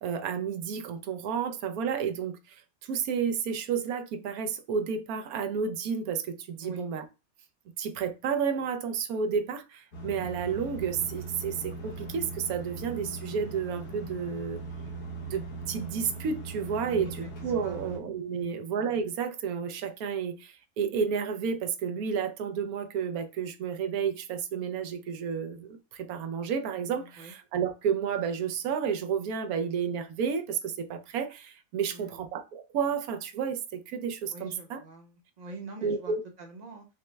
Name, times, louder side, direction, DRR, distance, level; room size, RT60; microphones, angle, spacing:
voice 1, 0.0-7.0 7.8-14.6 15.3-34.8 35.8-36.2, right 6 dB, 80° right, 1.1 m, -31 dB
sound 1, 9.9-18.0, right 3 dB, 55° left, 1.3 m, -40 dB
voice 2, 16.9-17.3 17.6-17.9 18.3-18.6 27.0-27.3 31.9-32.2 34.3-36.9, right 2 dB, 35° right, 0.8 m, -44 dB
5.6 x 2.1 x 3.2 m
omnidirectional pair, 1.5 m